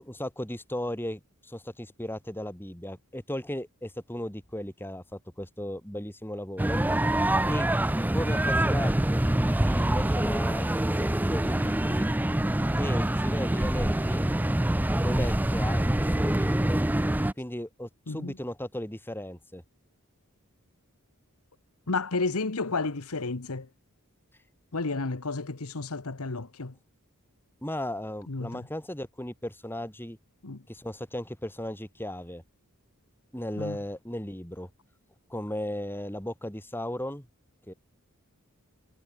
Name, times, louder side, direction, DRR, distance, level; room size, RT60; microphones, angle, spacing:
voice 1, 0.0-6.8 7.5-7.7 8.1-10.7 11.0-12.1 12.8-14.3 15.0-16.8 17.4-19.6 27.6-30.2 30.7-32.4 33.3-34.7 35.3-37.3 37.7-37.8, left 1 dB, 10° left, 4.0 m, -36 dB
sound 1, 6.6-17.3, right 1 dB, 10° right, 0.5 m, -25 dB
voice 2, 21.9-23.7 24.7-26.7 28.3-28.6 30.4-30.6 33.6-33.8, left 3 dB, 80° left, 1.3 m, -31 dB
head